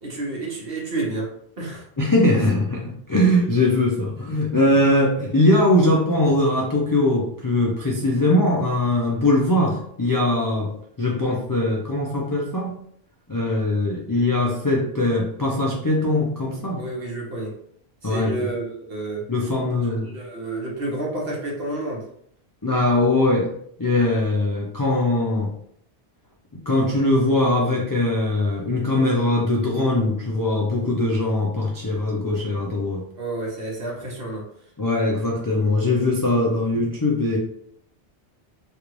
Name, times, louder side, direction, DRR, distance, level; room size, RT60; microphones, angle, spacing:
voice 1, 0.0-1.9 16.8-17.5 18.0-19.2 19.8-22.1 33.2-34.4, right 2 dB, 60° right, -3 dB, 1.3 m, -30 dB
voice 2, 2.0-10.7 11.0-12.8 13.3-16.8 18.0-18.3 19.3-20.1 22.6-23.5 23.8-25.5 26.5-33.1 34.8-37.4, left 1 dB, 35° left, -3 dB, 0.3 m, -21 dB
3.2 x 2.5 x 3.0 m, 0.67 s
omnidirectional pair, 1.1 m